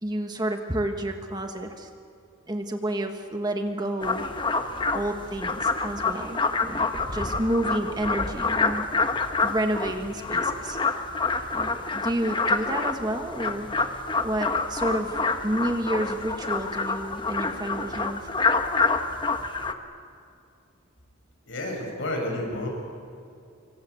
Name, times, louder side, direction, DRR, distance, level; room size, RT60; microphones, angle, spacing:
voice 1, 0.0-1.9 2.5-4.3 4.9-8.9 9.4-10.8 11.5-13.7 14.2-15.2 15.4-18.3, right 1 dB, 20° right, 5 dB, 1.4 m, -30 dB
sound 1, 4.0-19.7, left 3 dB, 25° left, 1.2 m, -27 dB
voice 2, 21.5-22.7, left 1 dB, 65° left, 1 dB, 7.4 m, -30 dB
27.0 x 25.0 x 8.4 m, 2.4 s
head